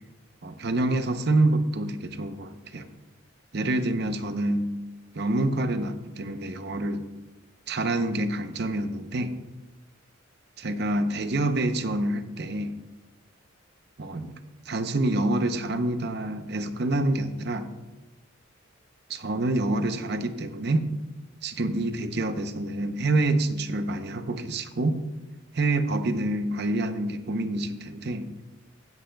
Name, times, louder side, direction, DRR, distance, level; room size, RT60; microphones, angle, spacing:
voice 1, 0.4-2.9 3.5-4.7 5.1-7.0 7.7-9.4 10.6-12.7 14.0-14.3 14.7-17.7 19.1-20.9 21.4-25.0 25.5-28.4, right 2 dB, 55° right, 9 dB, 0.7 m, -27 dB
15.0 x 10.5 x 2.3 m, 1.1 s
head